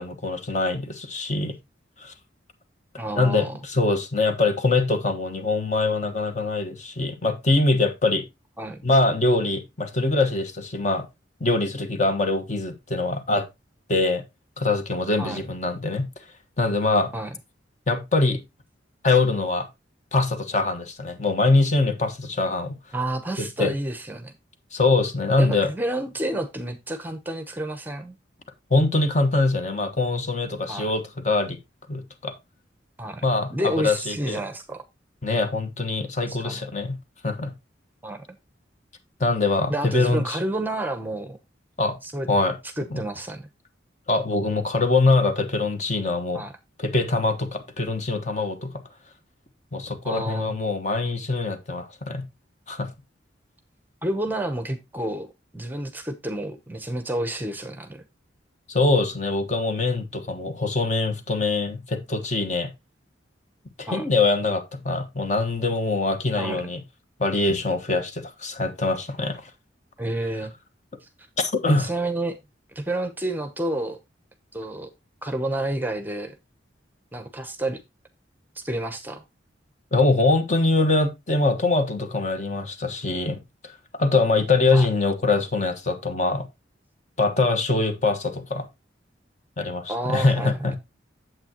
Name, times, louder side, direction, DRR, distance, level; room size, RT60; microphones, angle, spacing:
voice 1, 0.0-1.5 2.0-2.1 3.2-8.2 8.8-11.1 11.4-13.5 13.9-14.2 14.6-16.1 16.6-17.1 17.9-18.4 19.0-19.7 20.1-22.7 23.4-23.7 24.7-25.7 28.7-31.6 31.9-32.3 33.2-34.4 35.2-37.0 37.2-37.5 39.2-40.4 41.8-42.0 42.3-42.6 42.9-43.0 44.1-46.4 46.8-48.8 49.7-52.3 52.7-52.9 58.7-62.7 63.8-66.8 67.2-69.5 71.4-71.9 79.9-86.5 87.2-88.7 89.6-90.8, left 3 dB, 40° left, 1.3 m, -23 dB
voice 2, 3.0-3.5 8.6-8.8 15.2-15.5 17.1-17.4 22.9-24.3 25.4-28.2 30.7-30.9 33.0-34.8 36.3-36.7 38.0-38.4 39.7-41.4 42.0-42.3 42.8-43.5 46.3-46.5 50.0-50.6 54.0-58.0 63.8-64.1 66.4-66.6 70.0-70.5 71.0-71.1 71.7-72.4 72.7-74.0 74.5-74.9 75.2-76.3 77.1-77.8 78.6-79.2 84.7-84.9 89.9-90.7, right 1 dB, 10° right, 0.7 m, -30 dB
8.9 x 7.8 x 2.9 m
head